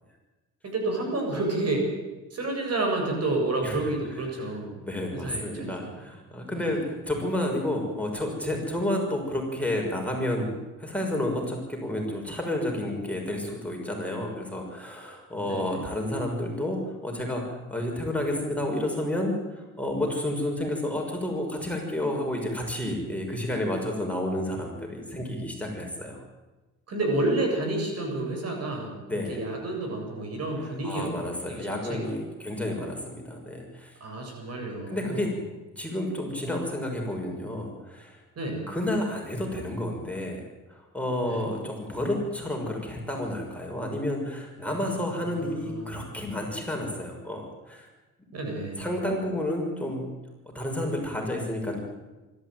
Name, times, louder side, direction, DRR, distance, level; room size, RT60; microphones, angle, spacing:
voice 1, 0.6-1.9 2.3-4.8 5.1-6.0 6.5-6.8 15.5-15.9 26.9-29.0 29.3-32.1 34.0-35.3 38.4-38.7 41.2-41.5 44.8-46.1 48.3-48.9, right 2 dB, 55° right, 2 dB, 7.6 m, -30 dB
voice 2, 4.8-10.5 10.8-26.2 29.1-29.4 30.8-34.0 34.9-35.3 35.8-38.2 38.7-40.4 40.7-47.9 48.8-50.0 50.5-51.8, left 1 dB, 5° left, 0 dB, 6.2 m, -30 dB
24.5 x 13.5 x 9.4 m, 1.1 s
cardioid pair, 90°, 30 cm